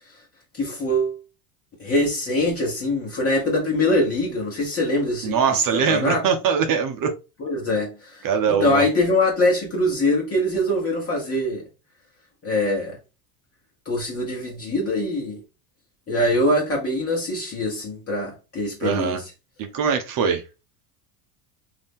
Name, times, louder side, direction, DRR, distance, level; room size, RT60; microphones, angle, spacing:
voice 1, 0.5-1.2 1.8-5.4 5.7-6.2 7.4-8.2 8.5-11.6 12.4-13.0 13.8-15.4 16.1-19.2, left 1 dB, 30° left, 1.3 m, -23 dB
voice 2, 5.2-7.1 8.2-8.8 18.8-19.2 19.6-20.4, right 6 dB, 45° right, 0.8 m, -22 dB
2.8 x 2.6 x 3.6 m
supercardioid pair, 90°, 46 cm